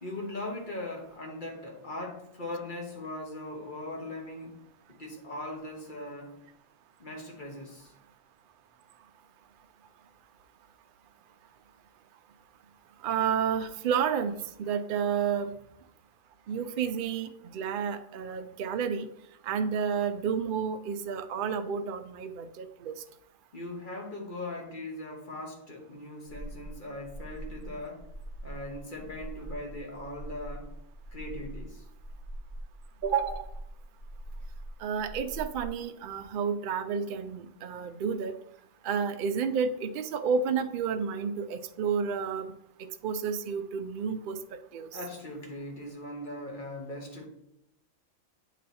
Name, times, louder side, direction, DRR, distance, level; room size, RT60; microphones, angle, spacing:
voice 1, 0.0-4.6 4.9-6.3 7.0-7.9 23.5-28.1 28.4-30.7 31.1-31.8 44.9-47.3, left 1 dB, 40° left, 0 dB, 1.3 m, -40 dB
voice 2, 13.0-15.5 16.5-19.1 19.4-22.9 33.0-33.5 34.8-38.4 38.8-42.5 42.8-45.0, right 6 dB, 65° right, 8 dB, 0.5 m, -31 dB
sound 1, 26.3-35.7, right 1 dB, 60° left, 0.9 m, -43 dB
8.6 x 3.1 x 4.1 m, 0.78 s
omnidirectional pair, 1.4 m